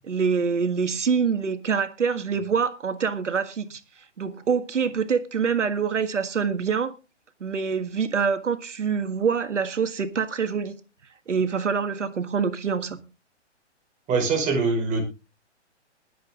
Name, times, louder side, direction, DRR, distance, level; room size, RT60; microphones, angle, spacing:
voice 1, 0.0-3.8 4.2-6.9 7.4-10.7 11.3-13.0, right 6 dB, 80° right, 1.7 m, -25 dB
voice 2, 14.1-15.0, right 4 dB, 20° right, 5.1 m, -23 dB
20.5 x 7.8 x 3.7 m
hypercardioid pair, 140°, 36 cm